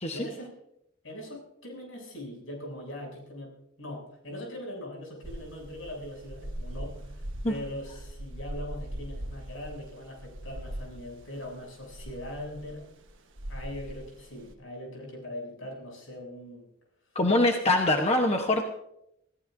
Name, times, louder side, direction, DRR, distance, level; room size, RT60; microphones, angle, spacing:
voice 1, 0.1-0.5 1.0-12.9 13.5-16.7, left 1 dB, 80° left, -1 dB, 7.6 m, -41 dB
sound 1, 5.2-14.5, right 1 dB, 70° right, 1.3 m, -41 dB
voice 2, 17.1-18.6, left 2 dB, 30° left, 3 dB, 1.1 m, -24 dB
27.5 x 17.0 x 2.7 m, 0.79 s
head